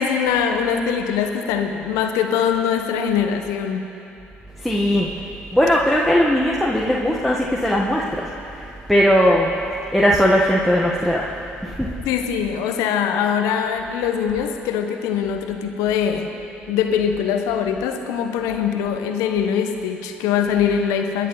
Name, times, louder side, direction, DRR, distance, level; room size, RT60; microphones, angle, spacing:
voice 1, 0.0-3.9 12.0-16.3 16.7-21.3, left 7 dB, 75° left, 5 dB, 1.3 m, -22 dB
voice 2, 4.6-5.1 5.5-9.5 9.9-11.3 11.6-11.9, equal, ahead, -4 dB, 1.7 m, -19 dB
29.0 x 10.0 x 4.1 m, 2.8 s
hypercardioid pair, 50°, 6 cm